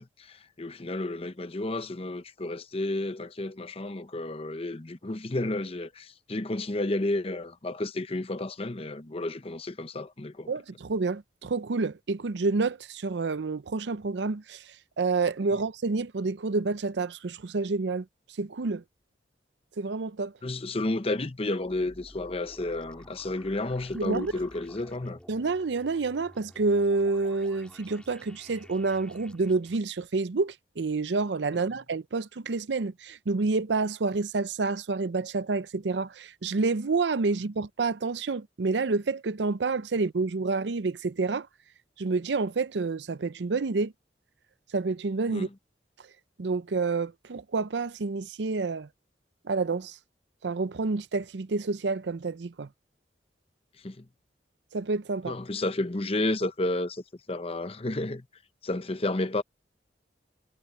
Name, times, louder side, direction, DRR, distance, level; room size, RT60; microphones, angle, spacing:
voice 1, 0.0-10.5 20.4-25.2 31.5-31.6 45.3-45.5 53.8-54.1 55.3-58.2 58.6-59.4, left 2 dB, 35° left, 0.8 m, -31 dB
voice 2, 10.5-14.6 15.0-18.0 18.4-18.8 19.8-20.3 23.9-24.3 25.3-41.5 42.0-43.9 44.7-45.5 46.4-48.9 49.5-49.9 50.4-52.7 54.7-55.4, right 3 dB, 75° right, 0.6 m, -28 dB
sound 1, 21.5-29.8, equal, 5° left, 2.5 m, -52 dB
head